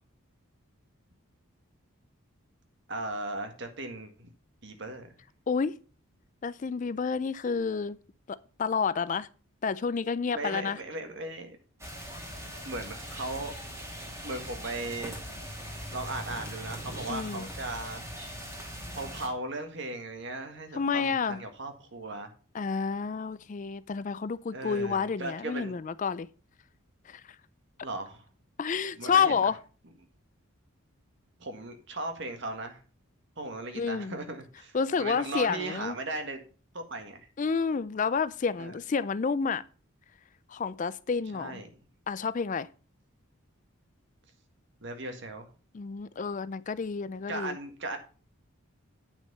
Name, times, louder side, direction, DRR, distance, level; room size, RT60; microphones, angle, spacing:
voice 1, 2.9-4.3 4.6-5.2 10.3-11.6 12.6-13.5 14.2-15.1 15.9-18.1 19.0-22.3 24.5-25.7 27.8-28.2 29.0-29.4 31.4-32.8 33.4-36.4 36.7-37.3 38.6-38.8 41.3-41.7 44.8-45.5 47.3-48.0, right 2 dB, 55° right, 1.7 m, -37 dB
voice 2, 6.4-8.0 8.3-9.3 9.6-10.8 17.1-17.5 20.7-21.4 22.5-26.3 27.1-27.2 28.6-29.6 33.7-34.2 34.7-36.0 37.4-39.6 40.5-41.6 42.1-42.7 45.7-47.6, left 5 dB, 35° left, 0.3 m, -29 dB
sound 1, 11.8-19.3, equal, 15° right, 2.1 m, -40 dB
9.2 x 6.0 x 5.5 m
head